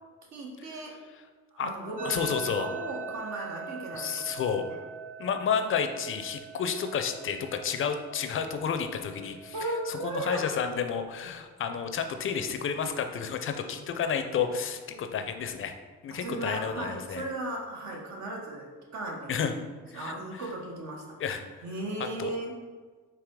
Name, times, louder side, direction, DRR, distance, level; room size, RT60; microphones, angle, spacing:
voice 1, 0.3-0.9 1.5-4.4 4.7-4.8 9.5-10.5 16.1-19.5 19.9-21.2 21.6-22.5, right 2 dB, 65° right, -1 dB, 1.1 m, -36 dB
voice 2, 2.0-2.7 3.9-4.6 5.2-15.7 16.0-17.2 19.3-19.5 19.9-20.1 21.2-21.6 22.2-22.3, left 7 dB, 45° left, 7 dB, 0.5 m, -31 dB
sound 1, 2.0-11.0, right 6 dB, 30° right, 0.5 m, -43 dB
4.7 x 2.8 x 3.7 m, 1.5 s
cardioid pair, 90°, 30 cm